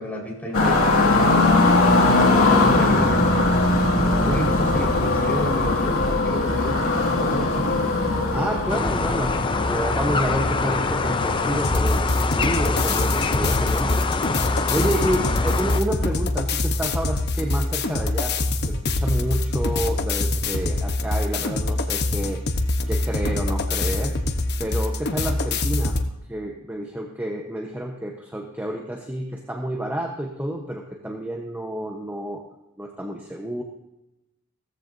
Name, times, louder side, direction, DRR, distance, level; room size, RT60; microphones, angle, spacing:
voice 1, 0.0-1.5 2.0-3.5 4.2-6.8 7.2-7.9 15.1-15.4, equal, 10° left, -3 dB, 4.5 m, -31 dB
sound 1, 0.5-11.6, left 2 dB, 85° left, 2.3 m, -20 dB
voice 2, 8.3-14.0 14.5-22.4 22.9-24.2 24.6-26.0 26.3-32.4 32.8-33.6, right 1 dB, 10° right, 2 dB, 1.0 m, -29 dB
sound 2, 8.7-15.8, left 4 dB, 25° left, 0.5 m, -25 dB
sound 3, 11.6-26.1, left 2 dB, 55° left, 1.0 m, -24 dB
16.5 x 14.5 x 2.7 m, 0.94 s
head